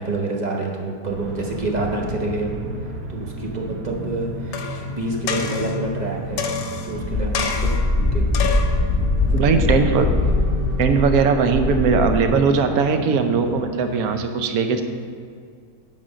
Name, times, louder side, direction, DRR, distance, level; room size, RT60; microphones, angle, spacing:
voice 1, 0.0-2.6 3.1-6.5 6.8-8.3 9.5-10.3, right 2 dB, 40° right, 0 dB, 0.6 m, -28 dB
sound 1, 1.1-14.2, right 1 dB, 90° right, 1.4 m, -32 dB
sound 2, 4.5-4.9 5.3-5.8 6.4-7.0 7.3-7.9 8.3-8.8 9.4-9.5, left 6 dB, 65° left, 1.1 m, -27 dB
Wind, 6.9-12.3, left 2 dB, 15° left, 1.2 m, -22 dB
voice 2, 9.3-10.1 10.8-14.8, right 5 dB, 70° right, 7 dB, 1.1 m, -19 dB
8.6 x 4.2 x 6.2 m, 2.2 s
omnidirectional pair, 1.8 m